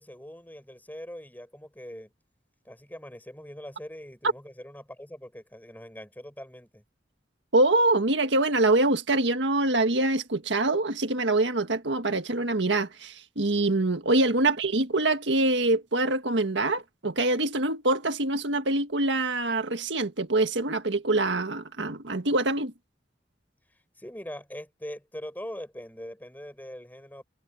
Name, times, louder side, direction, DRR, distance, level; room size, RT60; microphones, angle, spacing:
voice 1, 0.0-2.1 2.6-6.8 24.0-27.2, equal, 10° left, 6.7 m, -42 dB
voice 2, 7.5-22.7, right 2 dB, 85° right, 1.7 m, -25 dB
head